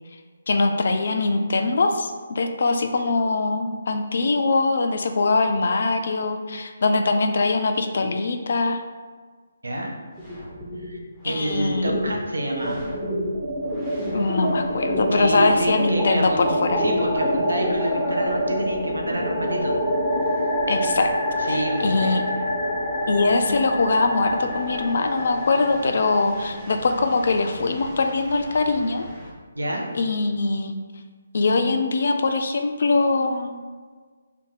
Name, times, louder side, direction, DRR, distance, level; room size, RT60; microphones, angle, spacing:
voice 1, 0.5-8.8 11.2-11.9 14.1-16.8 20.7-21.1 21.5-22.2 23.1-29.1 29.9-30.8 31.3-33.6, left 3 dB, 60° left, 6 dB, 0.3 m, -22 dB
sound 1, 10.2-11.0 11.3-29.3, equal, 5° right, 0.6 m, -27 dB
voice 2, 11.2-12.9 15.1-16.4 16.8-19.7 21.4-22.5 29.5-29.8, right 1 dB, 80° right, 0 dB, 0.6 m, -28 dB
2.7 x 2.1 x 3.8 m, 1.5 s
figure-of-eight pair, 145°, 0 cm